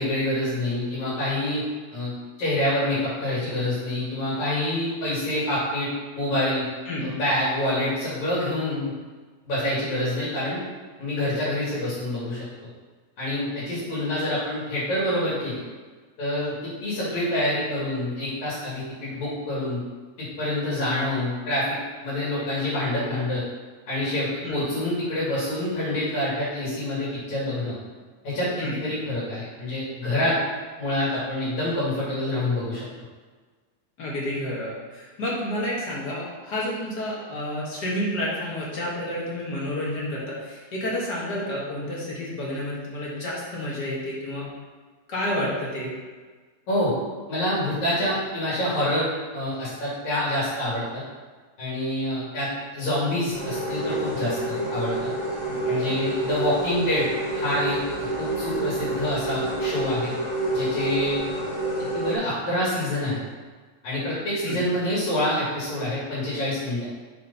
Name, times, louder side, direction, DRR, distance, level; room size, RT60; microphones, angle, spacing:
voice 1, 0.0-1.6 1.9-2.1 2.4-5.9 6.1-6.6 7.0-8.9 9.4-10.6 11.0-12.5 13.2-15.6 16.2-19.8 20.2-21.8 22.0-23.4 23.9-27.8 28.2-30.4 30.8-32.9 46.7-46.9 47.3-51.0 51.6-55.1 55.7-60.1 60.5-61.3 61.9-63.2 63.8-66.8, left 1 dB, 70° left, -9 dB, 4.0 m, -27 dB
voice 2, 34.0-44.5 45.1-45.9 55.4-55.9 64.4-64.6, left 1 dB, 40° left, -5 dB, 1.8 m, -30 dB
sound 1, 53.3-62.1, right 2 dB, 10° left, 1.5 m, -28 dB
7.1 x 4.5 x 5.6 m, 1.4 s
omnidirectional pair, 3.4 m